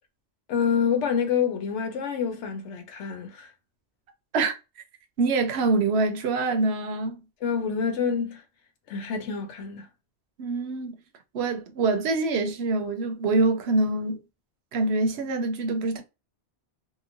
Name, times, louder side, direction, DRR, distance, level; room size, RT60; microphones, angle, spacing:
voice 1, 0.5-3.5 7.4-8.4 8.9-9.9, left 6 dB, 85° left, 1.0 m, -27 dB
voice 2, 5.2-7.1 10.4-11.0 11.3-14.2 14.7-16.0, right 3 dB, 75° right, 0.8 m, -25 dB
2.9 x 2.1 x 2.5 m
omnidirectional pair, 1.2 m